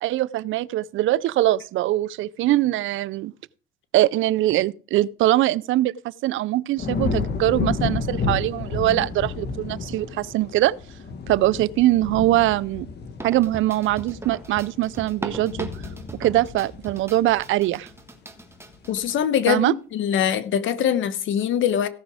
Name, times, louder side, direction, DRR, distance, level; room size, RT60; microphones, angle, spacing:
voice 1, 0.0-3.3 3.9-5.9 6.2-10.7 11.3-12.9 13.2-15.7 16.2-17.9 19.5-19.7, right 15 dB, 80° right, 0.5 m, -22 dB
sound 1, 6.8-18.1 18.5-19.0, left 4 dB, 60° left, 1.6 m, -31 dB
sound 2, 13.2-19.2 19.5-19.6 20.5-20.6, right 2 dB, 10° right, 1.6 m, -39 dB
voice 2, 18.9-21.9, left 9 dB, 80° left, 1.1 m, -23 dB
16.5 x 6.0 x 4.9 m
cardioid pair, 90°, 20 cm